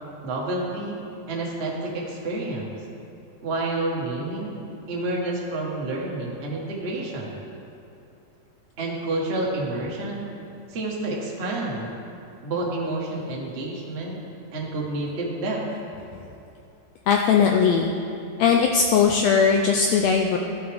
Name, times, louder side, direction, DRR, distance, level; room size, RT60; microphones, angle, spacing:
voice 1, 0.2-1.0 1.3-2.7 3.4-4.5 4.9-7.3 8.8-10.2 10.7-11.9 12.4-14.2 14.5-15.6, right 2 dB, 70° right, -3 dB, 0.6 m, -29 dB
voice 2, 17.1-17.9 18.4-20.4, left 6 dB, 80° left, 2 dB, 1.5 m, -19 dB
13.0 x 7.8 x 3.4 m, 2.7 s
omnidirectional pair, 3.5 m